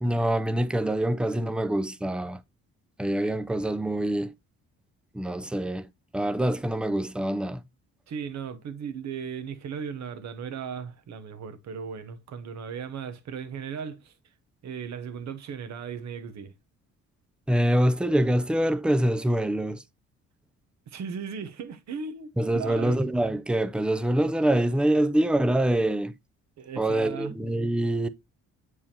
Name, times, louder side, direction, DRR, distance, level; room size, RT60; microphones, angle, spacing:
voice 1, 0.0-2.4 3.0-4.3 5.1-5.9 6.1-7.6 17.5-19.8 22.4-26.1 26.8-28.1, right 1 dB, 5° right, 0.4 m, -25 dB
voice 2, 8.1-14.1 14.6-16.5 20.9-23.1 26.6-27.3, right 6 dB, 65° right, 1.0 m, -37 dB
7.3 x 4.7 x 2.8 m
cardioid pair, 90°, 30 cm